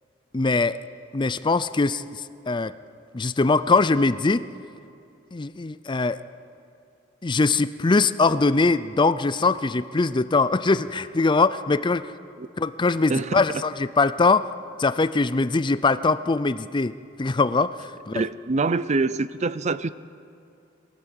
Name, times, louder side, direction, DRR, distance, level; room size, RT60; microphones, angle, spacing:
voice 1, 0.3-0.8 1.1-2.0 2.5-2.7 3.1-4.4 5.3-6.2 7.2-12.1 12.6-14.5 14.8-18.2, left 3 dB, 25° left, 15 dB, 0.5 m, -22 dB
voice 2, 13.1-13.6 18.1-19.9, right 3 dB, 35° right, 16 dB, 0.5 m, -25 dB
23.0 x 17.5 x 8.1 m, 2.5 s
head